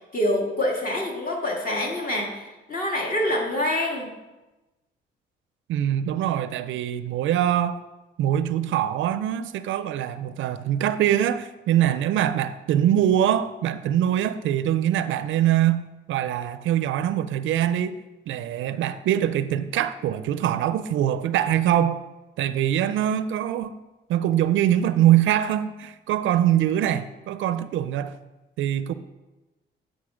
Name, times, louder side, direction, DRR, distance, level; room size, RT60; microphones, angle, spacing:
voice 1, 0.1-4.1, left 1 dB, 45° left, 2.1 m, -26 dB
voice 2, 5.7-7.8 8.2-18.0 18.3-22.1 22.4-23.8 24.1-28.2 28.6-28.9, right 11 dB, 75° right, 0.4 m, -23 dB
9.7 x 3.8 x 5.0 m
cardioid pair, 90°, 20 cm